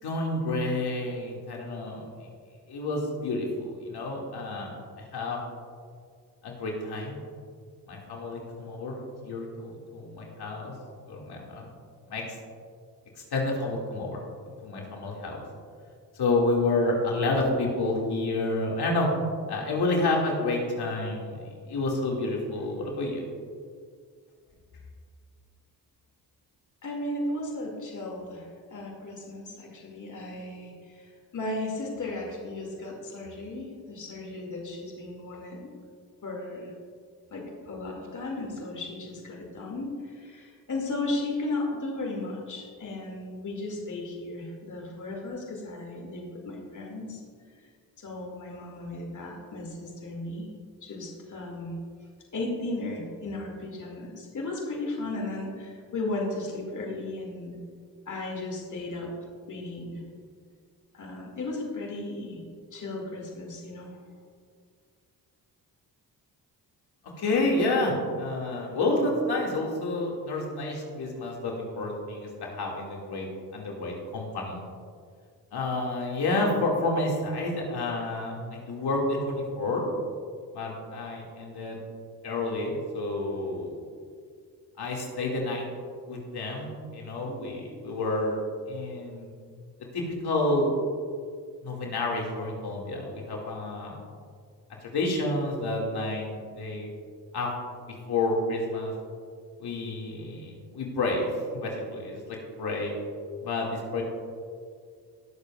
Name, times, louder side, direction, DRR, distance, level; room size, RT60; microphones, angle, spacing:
voice 1, 0.0-2.1 2.7-5.4 6.4-7.2 7.9-10.7 11.1-11.7 12.1-12.2 13.3-14.2 14.6-15.4 16.2-19.1 19.5-23.2 67.2-73.3 73.5-74.6 75.5-79.8 80.5-81.8 82.2-83.8 84.8-85.7 86.1-88.4 88.7-89.3 89.9-90.8 91.6-94.0 94.8-96.9 97.3-97.5 97.9-98.9 99.6-101.3 101.5-102.2 102.6-102.9 103.4-104.0, left 2 dB, 70° left, -1 dB, 2.2 m, -29 dB
voice 2, 26.8-35.6 36.2-36.7 37.3-47.2 48.0-50.5 50.8-51.8 52.3-57.6 58.1-59.1 59.5-60.0 60.9-62.4 62.7-63.9, left 2 dB, 45° left, -1 dB, 2.3 m, -35 dB
19.0 x 7.1 x 2.4 m, 2.1 s
supercardioid pair, 65°, 41 cm